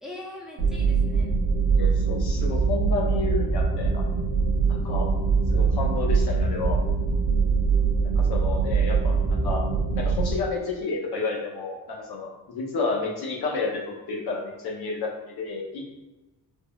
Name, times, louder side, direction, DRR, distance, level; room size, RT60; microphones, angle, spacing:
voice 1, 0.0-1.4, left 1 dB, ahead, -3 dB, 0.6 m, -41 dB
sound 1, 0.6-10.3, right 5 dB, 85° right, 0.6 m, -23 dB
voice 2, 1.8-4.0 4.7-5.1 5.5-6.8 8.0-9.6 10.0-15.9, left 4 dB, 80° left, -1 dB, 0.7 m, -31 dB
3.5 x 2.0 x 2.3 m, 1.1 s
cardioid pair, 95°, 37 cm